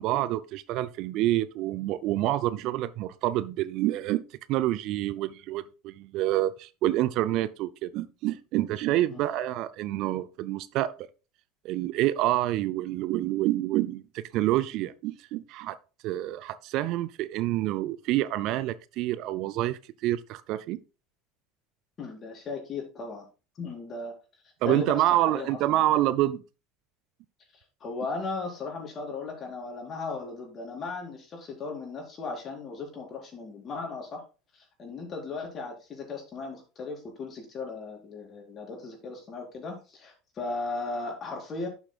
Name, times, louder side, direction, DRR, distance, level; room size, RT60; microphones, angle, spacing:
voice 1, 0.0-10.9 11.6-15.8 16.0-20.8 24.6-26.4, right 15 dB, 55° right, 0.5 m, -27 dB
voice 2, 22.0-23.3 23.5-24.1 24.6-25.9 27.5-34.2 34.5-41.7, left 4 dB, 35° left, 4.4 m, -37 dB
11.5 x 7.1 x 2.4 m
hypercardioid pair, 75°, 0 cm